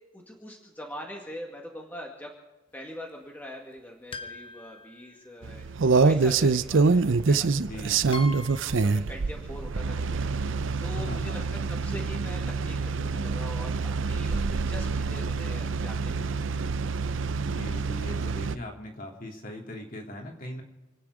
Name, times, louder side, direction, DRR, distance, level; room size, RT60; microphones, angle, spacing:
voice 1, 0.1-2.3 2.7-5.7 6.0-8.0 8.7-11.4 11.7-16.7, left 1 dB, 10° left, 0 dB, 2.0 m, -43 dB
sound 1, 4.1-5.6 7.0-7.1 8.1-9.0, left 3 dB, 25° left, 1.1 m, -42 dB
sound 2, 5.4-18.6, right 4 dB, 70° right, 0.6 m, -26 dB
voice 2, 7.6-8.3 10.9-11.4 17.5-20.6, left 1 dB, 45° left, 1 dB, 3.1 m, -40 dB
28.5 x 9.7 x 4.9 m, 1.1 s
head